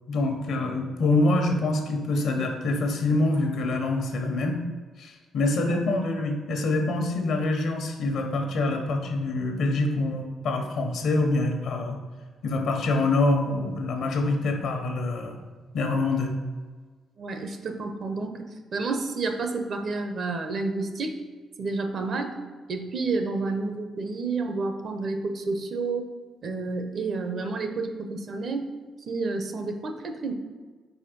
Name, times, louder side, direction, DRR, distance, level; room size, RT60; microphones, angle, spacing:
voice 1, 0.1-4.6 5.0-12.0 12.4-15.4 15.7-16.3, left 2 dB, 75° left, 3 dB, 1.1 m, -25 dB
voice 2, 17.2-18.5 18.7-21.2 21.6-22.4 22.7-26.1 26.4-28.7 29.0-30.3, right 3 dB, 55° right, 6 dB, 0.8 m, -30 dB
4.9 x 4.4 x 5.2 m, 1.4 s
cardioid pair, 90°, 0 cm